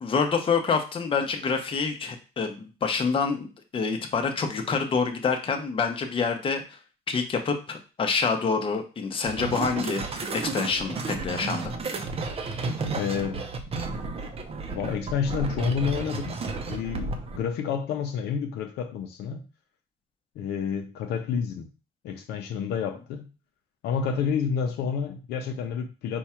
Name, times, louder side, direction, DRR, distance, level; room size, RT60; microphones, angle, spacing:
voice 1, 0.0-3.5 3.7-6.6 7.1-11.7, left 5 dB, 30° left, 0.8 m, -27 dB
sound 1, 9.2-17.4, right 3 dB, 35° right, 0.7 m, -32 dB
voice 2, 13.0-13.5 14.7-16.3 16.7-19.4 20.4-21.7 22.0-23.3 23.8-26.2, left 7 dB, 75° left, 0.7 m, -29 dB
4.6 x 2.3 x 4.3 m
cardioid pair, 110°, 17 cm